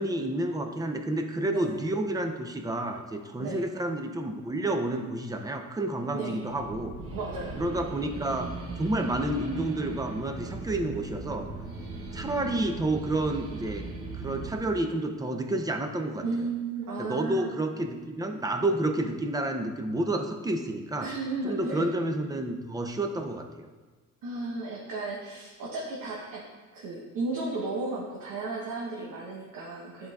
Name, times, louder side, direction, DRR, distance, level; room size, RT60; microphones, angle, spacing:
voice 1, 0.0-6.9 7.6-11.5 12.1-13.8 14.2-16.2 17.0-21.1 21.4-23.7, right 1 dB, 10° right, 5 dB, 0.5 m, -30 dB
voice 2, 6.1-6.5 7.0-7.7 16.2-17.5 21.0-21.9 24.2-26.4 26.7-30.1, right 3 dB, 80° right, -4 dB, 1.0 m, -34 dB
sound 1, 6.4-14.6, right 3 dB, 45° right, 1.0 m, -39 dB
10.5 x 3.8 x 2.3 m, 1.4 s
cardioid pair, 110°, 33 cm